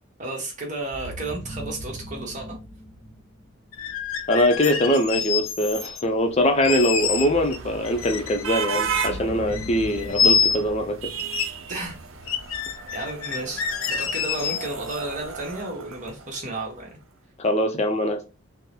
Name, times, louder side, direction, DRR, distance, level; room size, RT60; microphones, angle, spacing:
voice 1, 0.2-2.5 11.7-12.0 12.9-17.0, right 2 dB, 35° right, 0 dB, 1.0 m, -33 dB
sound 1, 0.9-3.8 8.8-12.0, equal, 10° left, 1.1 m, -39 dB
sound 2, 3.7-6.0 6.6-7.6 7.8-9.2 9.5-10.9 11.2-11.5 11.8-11.9 12.3-15.0, left 6 dB, 90° left, 0.5 m, -27 dB
voice 2, 4.3-10.9 17.4-18.3, equal, 30° left, 5 dB, 0.5 m, -22 dB
sound 3, 6.3-16.7, right 6 dB, 75° right, 0.5 m, -35 dB
3.8 x 2.0 x 2.8 m, 0.29 s
head